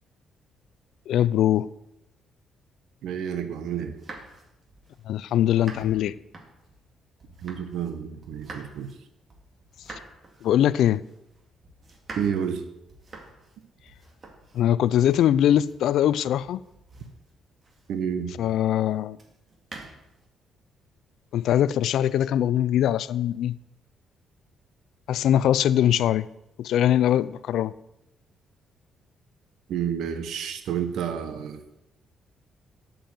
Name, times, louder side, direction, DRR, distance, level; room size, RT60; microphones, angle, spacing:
voice 1, 1.1-1.7 5.1-6.1 9.9-10.0 10.4-11.0 14.5-16.6 18.4-19.2 21.3-23.6 25.1-26.3 26.6-27.7, left 11 dB, 80° left, 0.3 m, -22 dB
voice 2, 3.0-3.9 7.4-8.9 12.2-12.6 17.9-18.3 29.7-31.6, right 8 dB, 80° right, 1.1 m, -30 dB
sound 1, 3.8-8.0 8.2-18.2 19.1-20.3, right 2 dB, 40° right, 2.1 m, -47 dB
8.7 x 5.4 x 7.9 m
cardioid pair, 90°, 0 cm